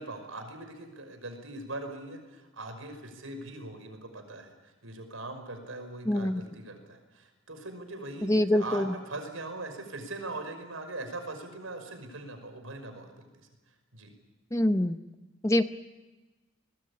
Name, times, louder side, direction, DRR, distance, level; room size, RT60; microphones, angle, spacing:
voice 1, 0.0-4.5 4.8-13.5 13.9-14.1, right 2 dB, 80° right, 6 dB, 5.6 m, -41 dB
voice 2, 6.1-6.4 8.2-8.9 14.5-15.0 15.4-15.6, left 1 dB, 15° left, 9 dB, 0.8 m, -25 dB
23.5 x 21.0 x 8.6 m, 1.2 s
head